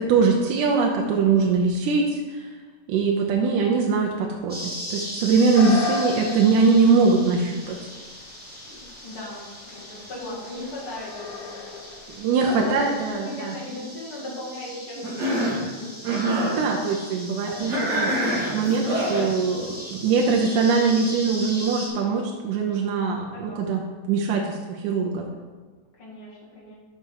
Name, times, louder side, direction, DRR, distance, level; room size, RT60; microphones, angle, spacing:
voice 1, 0.0-2.5 2.9-7.8 12.1-13.5 16.0-18.1 18.5-25.3, right 4 dB, 75° right, 0 dB, 2.2 m, -22 dB
sound 1, 4.5-21.9, equal, 5° right, 0.8 m, -39 dB
sound 2, 5.5-13.1, left 5 dB, 80° left, 2.3 m, -36 dB
voice 2, 8.7-11.6 12.4-15.9 16.4-16.7 17.4-18.0 19.4-19.8 23.3-23.6 24.3-24.5 25.3-25.4 25.9-26.7, left 1 dB, 45° left, -6 dB, 2.9 m, -37 dB
Cough, 15.0-15.6 16.0-16.6 17.7-19.3, equal, 30° right, 2.6 m, -26 dB
6.8 x 5.3 x 6.4 m, 1.5 s
omnidirectional pair, 3.7 m